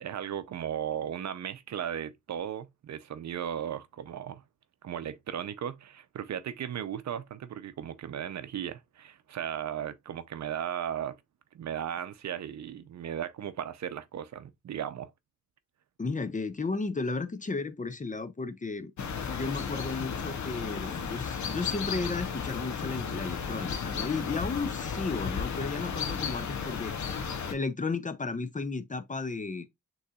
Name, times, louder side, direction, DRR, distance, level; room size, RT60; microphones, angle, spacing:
voice 1, 0.0-4.4 4.8-11.2 11.5-15.1, right 9 dB, 60° right, 0.6 m, -36 dB
voice 2, 16.0-18.9 19.3-27.0 27.3-29.7, left 4 dB, 25° left, 0.7 m, -34 dB
sound 1, 19.0-27.5, left 6 dB, 60° left, 0.9 m, -34 dB
6.4 x 3.2 x 2.3 m
supercardioid pair, 45°, 32 cm